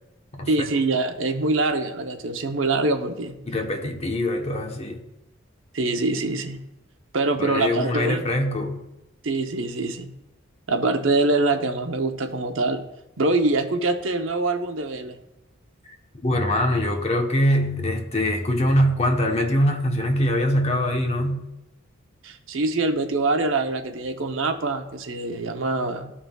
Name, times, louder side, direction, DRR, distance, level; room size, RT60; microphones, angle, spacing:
voice 1, 0.5-3.4 5.7-6.6 7.1-8.3 9.2-10.1 10.7-12.8 13.2-15.2 22.2-26.1, right 2 dB, 70° right, 0.7 m, -24 dB
voice 2, 3.4-5.0 7.4-8.8 16.2-21.4, left 1 dB, 30° left, 0.9 m, -23 dB
15.0 x 5.7 x 2.3 m
head